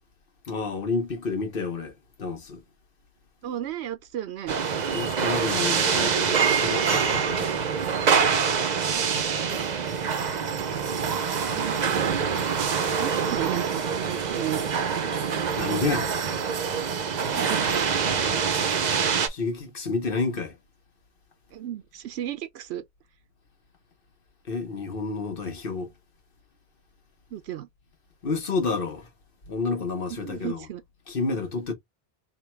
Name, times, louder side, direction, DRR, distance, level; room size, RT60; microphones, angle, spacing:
voice 1, 0.4-2.6 4.9-7.6 15.6-16.1 19.3-20.6 24.4-25.9 28.2-29.1 29.5-30.6 31.1-31.7, left 4 dB, 60° left, 1.2 m, -30 dB
voice 2, 3.4-4.6 5.2-6.1 8.9-9.1 9.5-9.9 12.9-15.3 17.2-17.7 21.5-22.8 27.3-27.7 30.1-30.8, right 12 dB, 85° right, 0.9 m, -36 dB
sound 1, 4.5-19.3, right 6 dB, 50° right, 0.6 m, -25 dB
3.5 x 2.2 x 4.3 m
omnidirectional pair, 1.1 m